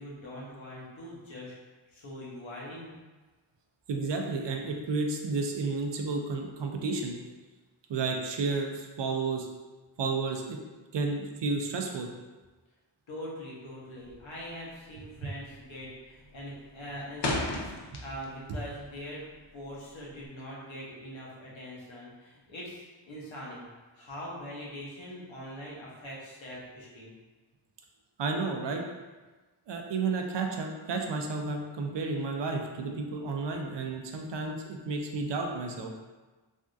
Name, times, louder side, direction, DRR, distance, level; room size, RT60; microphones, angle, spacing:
voice 1, 0.0-1.5 1.9-3.0 13.1-19.3 19.5-23.7 24.0-27.1, equal, 85° left, -5 dB, 1.0 m, -42 dB
voice 2, 3.9-7.2 7.9-9.5 10.0-10.6 10.9-12.1 15.2-15.3 17.9-18.0 18.5-18.6 28.2-28.8 29.7-35.9, right 3 dB, 70° right, 2 dB, 0.5 m, -32 dB
sound 1, 14.0-14.4 14.7-15.0 15.4-15.8 16.1-18.5 18.8-20.3, left 2 dB, 60° left, 0.5 m, -34 dB
3.4 x 2.6 x 2.3 m, 1.3 s
wide cardioid pair, 90°, 45 cm